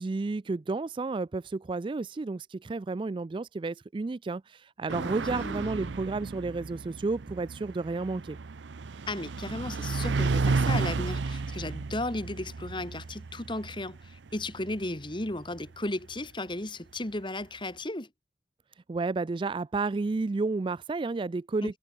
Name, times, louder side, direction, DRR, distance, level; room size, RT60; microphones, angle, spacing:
voice 1, 0.0-8.4 18.9-21.8, right 3 dB, 25° right, 0.3 m, -31 dB
voice 2, 4.9-5.9 9.1-18.1 21.6-21.8, left 2 dB, 25° left, 2.1 m, -35 dB
sound 1, 4.9-15.9, right 4 dB, 80° right, 0.6 m, -33 dB
head